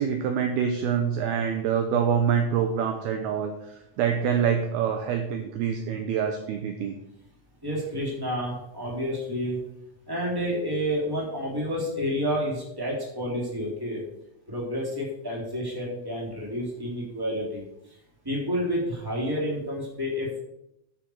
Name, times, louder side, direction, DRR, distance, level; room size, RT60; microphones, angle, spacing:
voice 1, 0.0-3.5 4.0-7.0, right 7 dB, 80° right, 5 dB, 2.2 m, -25 dB
voice 2, 7.6-9.6 10.1-14.0 14.5-17.6 18.2-20.4, equal, 5° right, -3 dB, 2.8 m, -29 dB
10.0 x 9.5 x 4.8 m, 0.81 s
omnidirectional pair, 5.4 m